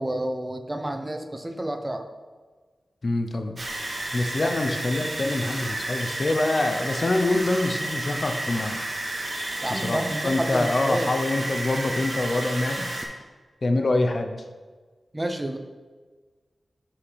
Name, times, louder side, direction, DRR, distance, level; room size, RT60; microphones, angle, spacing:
voice 1, 0.0-2.1 4.4-4.6 9.6-11.1 15.1-15.6, right 1 dB, 20° right, 6 dB, 0.7 m, -30 dB
voice 2, 3.0-3.6 4.1-8.8 9.7-12.9 13.6-14.4, left 2 dB, 50° left, 6 dB, 0.8 m, -25 dB
sound 1, 3.6-13.0, right 1 dB, 50° right, 2.2 m, -31 dB
9.4 x 5.7 x 3.4 m, 1.4 s
cardioid pair, 65°, 0 cm